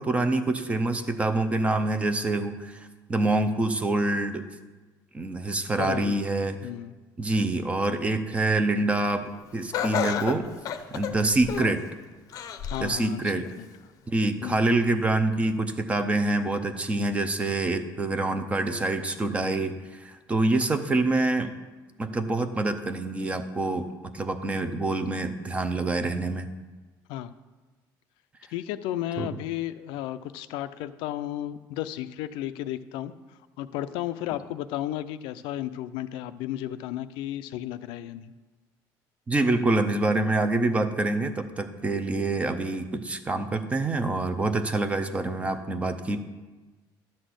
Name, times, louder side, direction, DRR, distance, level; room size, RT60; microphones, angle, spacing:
voice 1, 0.0-4.4 5.1-6.6 7.2-10.5 10.9-11.8 12.8-13.5 14.1-21.5 22.0-26.5 29.2-29.4 39.3-46.2, right 2 dB, 15° right, 9 dB, 0.6 m, -26 dB
voice 2, 5.8-6.2 6.6-6.9 12.7-13.7 14.4-14.6 27.1-27.3 28.5-33.1 33.6-38.3, left 13 dB, 85° left, 11 dB, 0.5 m, -33 dB
Laughter, 9.7-11.8 12.3-13.0 13.4-13.5 14.5-14.6, left 8 dB, 45° left, 0.6 m, -31 dB
12.0 x 4.2 x 7.8 m, 1.2 s
cardioid pair, 160°, 8 cm